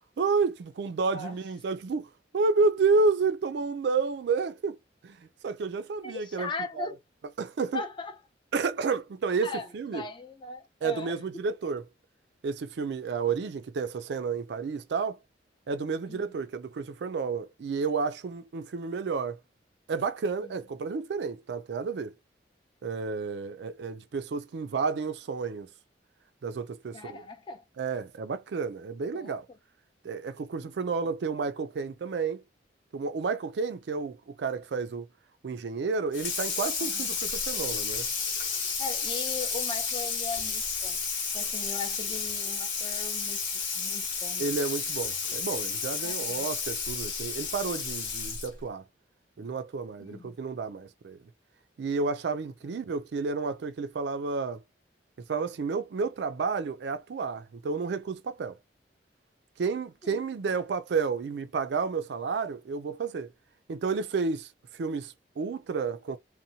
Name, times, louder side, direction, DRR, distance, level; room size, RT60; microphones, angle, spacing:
voice 1, 0.2-4.8 5.0-6.5 6.8-6.9 7.4-7.8 8.5-10.1 10.8-11.8 12.4-15.2 15.7-19.4 19.9-22.1 22.8-25.7 26.4-27.2 27.8-29.5 30.0-32.4 32.9-35.1 35.4-38.1 44.4-48.8 49.4-51.2 51.8-54.6 55.3-58.6 59.6-63.3 63.7-66.2, right 4 dB, 65° right, 0.4 m, -31 dB
voice 2, 6.0-7.0 7.7-8.2 9.4-11.2 16.1-16.4 20.4-20.5 26.9-27.6 29.1-29.4 30.6-30.7 36.8-37.1 38.8-41.0 41.3-43.4 43.8-44.5 46.0-46.5 50.0-50.4 60.0-60.2, left 4 dB, 25° left, 0.5 m, -39 dB
Water tap faucet / Sink (filling or washing), 36.1-48.6, left 5 dB, 80° left, 1.0 m, -32 dB
2.7 x 2.1 x 2.7 m
head